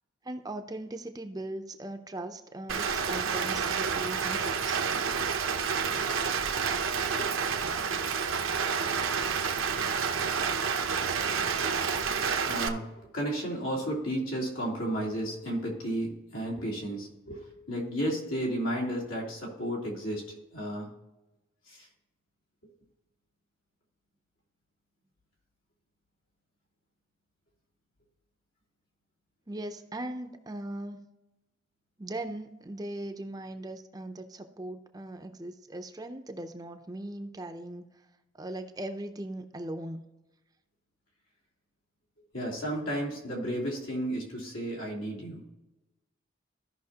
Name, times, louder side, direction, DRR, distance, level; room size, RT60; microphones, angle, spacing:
voice 1, 0.2-4.8 29.5-31.1 32.0-37.8 38.4-40.1, right 1 dB, 20° right, 7 dB, 0.5 m, -39 dB
Rain, 2.7-12.7, right 6 dB, 80° right, 0.8 m, -29 dB
voice 2, 12.4-20.2 20.5-20.9 21.7-21.9 42.3-45.4, right 1 dB, 85° left, -3 dB, 3.2 m, -33 dB
15.0 x 5.7 x 2.9 m, 1.0 s
head